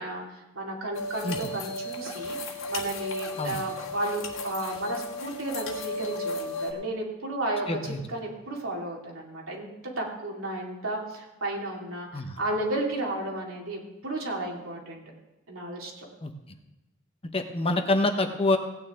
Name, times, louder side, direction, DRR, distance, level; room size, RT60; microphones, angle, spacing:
voice 1, 0.0-9.7 10.0-15.0 15.5-16.1, right 1 dB, 80° right, -1 dB, 2.7 m, -33 dB
sound 1, 0.9-6.7, left 1 dB, 75° left, 1.6 m, -34 dB
voice 2, 7.7-8.0 12.1-12.4 16.2-16.3 17.3-18.6, left 2 dB, 30° left, 6 dB, 0.9 m, -26 dB
17.0 x 9.4 x 3.7 m, 1.0 s
head